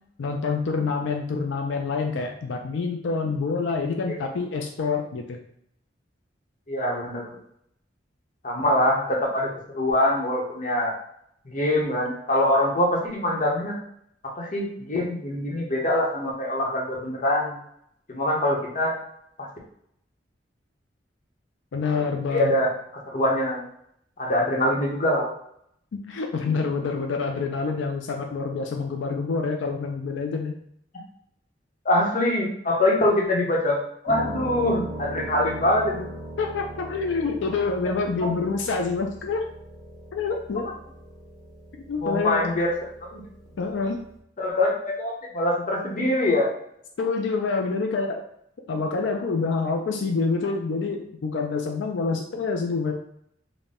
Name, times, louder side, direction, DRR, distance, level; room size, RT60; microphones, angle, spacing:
voice 1, 0.2-5.4 21.7-22.6 25.9-30.6 36.4-39.4 40.1-40.7 41.7-42.5 43.6-44.0 47.0-48.2 48.7-52.9, left 4 dB, 90° left, 3 dB, 0.4 m, -27 dB
voice 2, 6.7-7.4 8.4-10.9 11.4-13.8 14.4-17.6 18.1-18.9 19.4-19.5 22.3-22.7 23.1-23.6 24.2-25.3 31.8-33.8 34.0-36.1 38.2-38.3 42.0-42.7 43.1-43.2 43.8-43.9 44.4-46.5, left 1 dB, 45° left, -1 dB, 0.9 m, -24 dB
Piano, 34.1-44.2, right 1 dB, 20° right, 1.0 m, -39 dB
4.1 x 2.2 x 3.6 m, 0.71 s
head